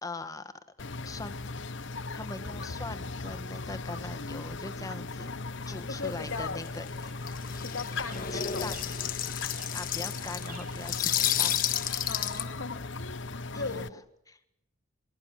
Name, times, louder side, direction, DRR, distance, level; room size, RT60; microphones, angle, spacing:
voice 1, 0.0-0.5 1.0-1.5 2.1-5.3 5.7-7.1 8.1-8.9 9.7-11.6 13.5-14.0 14.3-14.4, left 2 dB, 15° left, 10 dB, 1.5 m, -41 dB
sound 1, 0.8-13.9, left 3 dB, 60° left, 0.9 m, -38 dB
sound 2, 5.8-5.9 6.1-6.4 6.6-12.4, left 10 dB, 40° left, 1.5 m, -31 dB
voice 2, 5.9-6.6 7.6-8.7 12.1-13.2 13.6-14.0, left 3 dB, 80° left, 6 dB, 2.2 m, -38 dB
Chirp tweet, 7.0-12.2, right 4 dB, 40° right, 5.2 m, -53 dB
28.0 x 22.0 x 7.5 m, 0.81 s
head